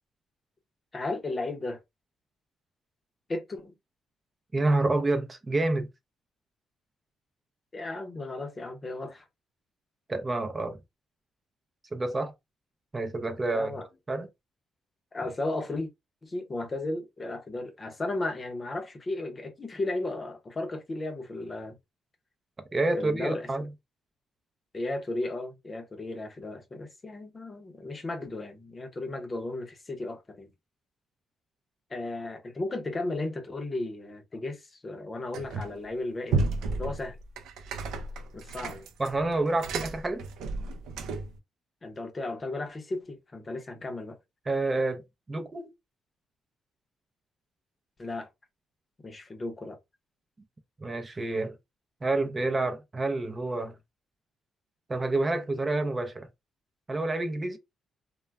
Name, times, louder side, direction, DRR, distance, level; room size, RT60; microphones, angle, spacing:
voice 1, 0.9-1.8 3.3-3.8 7.7-9.3 13.5-13.9 15.1-15.9 16.2-21.8 22.9-23.5 24.7-30.5 31.9-36.5 36.8-37.2 38.3-38.9 41.8-44.2 48.0-48.3 49.0-49.8, left 2 dB, 30° left, 0.7 m, -35 dB
voice 2, 4.5-5.9 10.1-10.8 11.9-12.3 12.9-13.7 14.1-14.3 22.7-23.6 39.0-40.2 44.5-45.7 50.8-51.5 52.0-53.8 54.9-56.3 56.9-57.6, right 2 dB, 25° right, 0.5 m, -28 dB
sound 1, 35.3-35.9 36.3-41.4, right 3 dB, 80° right, 0.5 m, -33 dB
2.3 x 2.1 x 3.3 m
cardioid pair, 90°, 0 cm